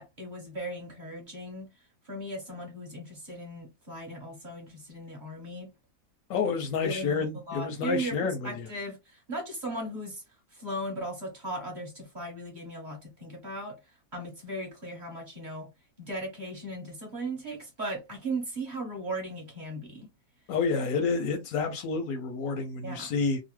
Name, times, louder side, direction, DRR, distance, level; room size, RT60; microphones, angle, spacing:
voice 1, 0.0-5.7 6.8-8.2 8.4-10.2 10.5-15.7 16.0-20.1 22.8-23.1, right 1 dB, 35° right, 1.2 m, -37 dB
voice 2, 6.3-8.7 20.5-23.4, left 5 dB, 90° left, 1.0 m, -29 dB
2.9 x 2.0 x 3.1 m
omnidirectional pair, 1.5 m